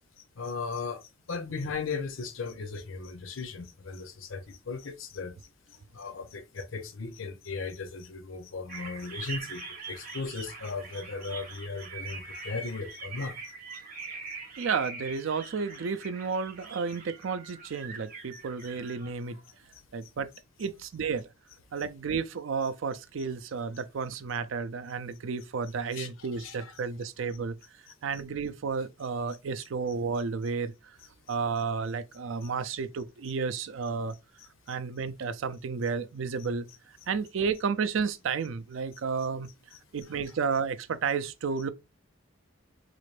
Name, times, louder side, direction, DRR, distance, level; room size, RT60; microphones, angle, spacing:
voice 1, 0.2-13.4 13.7-13.8 18.3-18.7 19.0-19.3 19.7-20.1 21.8-21.9 25.9-26.8 27.2-27.5 27.9-28.2 31.0-31.4 32.4-32.8 34.4-34.8 36.4-36.5 38.9-39.3 39.7-40.4, left 4 dB, 85° left, 0.7 m, -38 dB
sound 1, 8.7-19.1, right 4 dB, 45° right, 0.9 m, -43 dB
voice 2, 14.6-19.4 19.9-20.3 20.6-21.2 21.7-27.6 28.0-31.0 31.3-34.2 34.7-36.7 37.1-39.5 39.9-41.7, right 5 dB, 75° right, 0.4 m, -32 dB
4.1 x 2.5 x 3.2 m
head